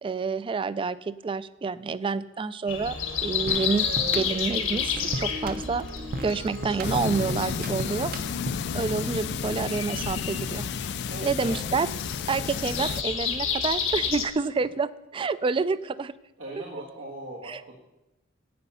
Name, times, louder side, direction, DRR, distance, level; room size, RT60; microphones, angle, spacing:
voice 1, 0.0-3.9 4.2-5.9 6.2-8.1 8.7-10.7 11.2-11.9 12.3-16.1 17.5-17.6, right 4 dB, 25° right, 17 dB, 0.3 m, -28 dB
Breathing, 2.7-14.3, left 6 dB, 85° left, 1.4 m, -31 dB
voice 2, 3.3-3.6 11.1-11.6 16.4-17.8, right 1 dB, 85° right, -3 dB, 1.6 m, -40 dB
sound 1, 3.5-8.8, right 1 dB, 45° right, 0.7 m, -36 dB
sound 2, 6.8-13.0, left 7 dB, 55° left, 0.3 m, -32 dB
9.4 x 9.1 x 5.6 m, 0.95 s
head